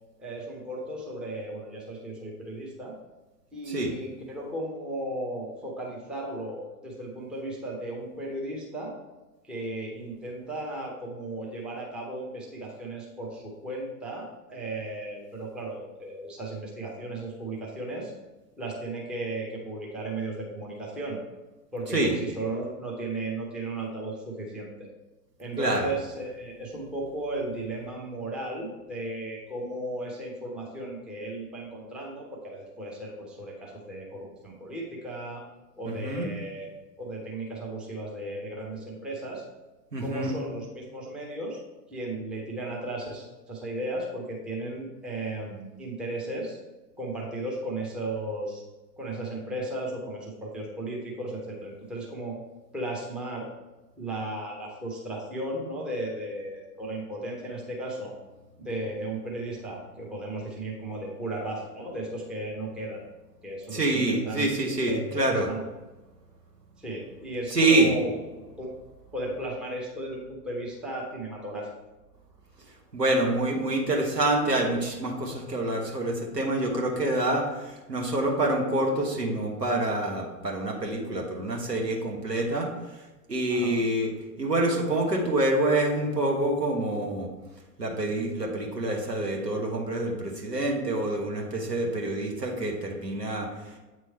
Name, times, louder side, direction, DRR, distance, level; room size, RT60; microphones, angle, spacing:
voice 1, 0.2-2.9 3.5-8.9 9.5-18.1 18.6-21.2 21.7-24.7 25.4-35.4 35.8-36.7 37.0-39.4 40.0-41.6 41.9-46.6 47.0-48.6 49.0-52.4 52.7-53.5 54.0-58.1 58.6-63.0 63.4-64.5 64.8-65.6 66.8-68.7 69.1-71.7 83.5-83.8, right 1 dB, ahead, -2 dB, 0.6 m, -35 dB
voice 2, 25.6-25.9 35.8-36.3 39.9-40.3 63.7-65.5 67.5-67.9 72.9-83.0 83.3-84.1 84.4-87.3 87.8-93.8, right 1 dB, 85° right, 1 dB, 1.3 m, -26 dB
8.0 x 3.1 x 4.4 m, 1.1 s
figure-of-eight pair, 100°, 47 cm